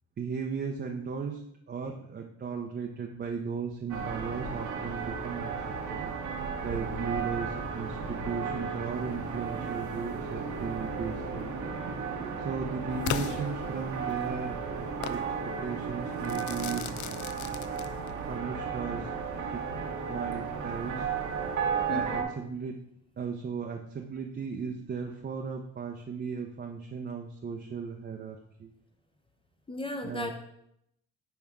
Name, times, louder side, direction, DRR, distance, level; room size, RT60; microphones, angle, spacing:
voice 1, 0.2-5.5 5.9-6.1 6.6-11.5 12.4-16.9 18.3-19.1 19.5-19.7 20.1-21.1 21.9-22.8 23.2-28.7 30.0-30.3, right 5 dB, 35° right, 2 dB, 0.6 m, -36 dB
sound 1, 3.9-22.2, right 5 dB, 75° right, 1.3 m, -34 dB
Crackle / Fireworks, 13.1-14.2 15.0-15.3 16.3-18.3, left 10 dB, 70° left, 0.5 m, -36 dB
voice 2, 21.9-22.3 29.7-30.3, left 1 dB, 15° left, 4 dB, 0.7 m, -35 dB
10.0 x 3.5 x 3.5 m, 0.76 s
cardioid pair, 90°, 30 cm